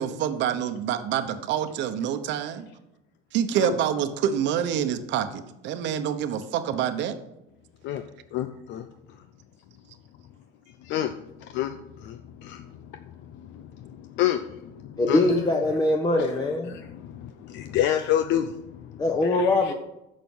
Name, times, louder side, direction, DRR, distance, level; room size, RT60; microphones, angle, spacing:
voice 1, 0.0-2.7 3.3-7.1, right 9 dB, 70° right, 9 dB, 1.1 m, -27 dB
voice 2, 8.3-8.8 10.9-11.1 11.5-11.7 12.1-12.2 12.4-12.6 14.2-14.4 15.1-15.4 16.7-16.8 17.5-18.5 19.3-19.7, left 11 dB, 70° left, 8 dB, 0.7 m, -26 dB
voice 3, 15.0-16.7 19.0-19.7, left 2 dB, 20° left, 2 dB, 1.1 m, -22 dB
10.5 x 6.8 x 5.5 m, 0.89 s
cardioid pair, 140°, 20 cm